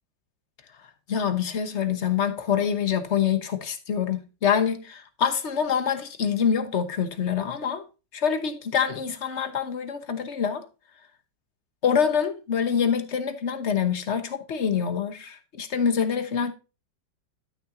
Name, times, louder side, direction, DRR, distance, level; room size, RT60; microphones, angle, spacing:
voice 1, 1.1-7.8 8.1-10.6 11.8-16.5, left 7 dB, 45° left, 1.1 m, -25 dB
12.0 x 6.6 x 2.6 m
omnidirectional pair, 2.0 m